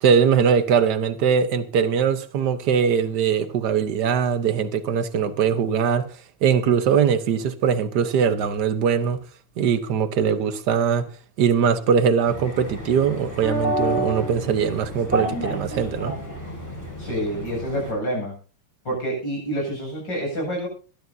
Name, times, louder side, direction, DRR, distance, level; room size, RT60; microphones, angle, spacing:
voice 1, 0.0-6.1 6.4-9.2 9.6-11.1 11.4-16.2, right 7 dB, 65° right, 1.6 m, -21 dB
sound 1, 12.3-17.9, right 1 dB, 10° left, 5.1 m, -29 dB
voice 2, 17.0-18.3 18.9-20.7, equal, 70° left, 8.7 m, -27 dB
21.5 x 12.5 x 2.8 m
omnidirectional pair, 2.0 m